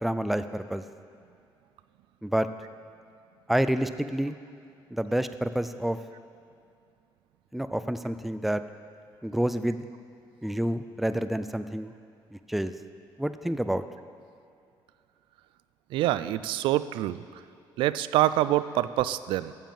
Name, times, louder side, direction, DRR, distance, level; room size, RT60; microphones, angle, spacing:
voice 1, 0.0-0.8 2.2-2.5 3.5-4.4 4.9-6.0 7.5-8.6 9.2-9.8 10.4-11.9 12.5-12.7 13.2-13.8, right 1 dB, ahead, 11 dB, 0.4 m, -28 dB
voice 2, 15.9-17.2 17.8-19.5, right 14 dB, 90° right, 15 dB, 0.4 m, -25 dB
15.0 x 7.1 x 5.5 m, 2.4 s
cardioid pair, 135°, 8 cm